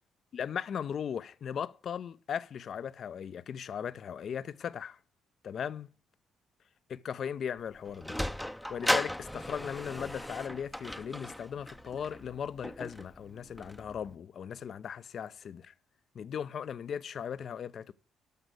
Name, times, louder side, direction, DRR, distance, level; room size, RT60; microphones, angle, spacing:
voice 1, 0.3-5.0 5.4-5.9 6.9-8.2 8.7-15.7 16.1-17.9, left 8 dB, 55° left, 0.5 m, -38 dB
Sliding door, 7.6-14.1, left 1 dB, 5° left, 0.6 m, -37 dB
13.5 x 6.0 x 6.4 m
hypercardioid pair, 45°, 0 cm